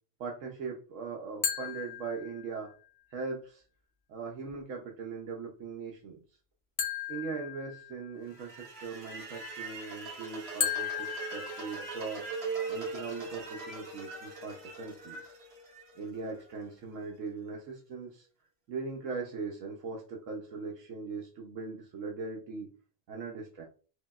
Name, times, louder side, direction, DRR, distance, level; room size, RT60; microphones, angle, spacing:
voice 1, 0.2-2.7 3.1-3.6 4.1-6.2 7.1-12.3 12.7-15.3 16.0-18.3 18.7-22.7 23.1-23.6, right 4 dB, 75° right, -1 dB, 1.1 m, -40 dB
sound 1, 1.4-2.7 6.8-8.3 10.6-12.3, left 8 dB, 70° left, 1.1 m, -36 dB
sound 2, 8.3-16.4, right 4 dB, 55° right, 1.4 m, -40 dB
4.9 x 2.8 x 2.3 m, 0.38 s
omnidirectional pair, 1.3 m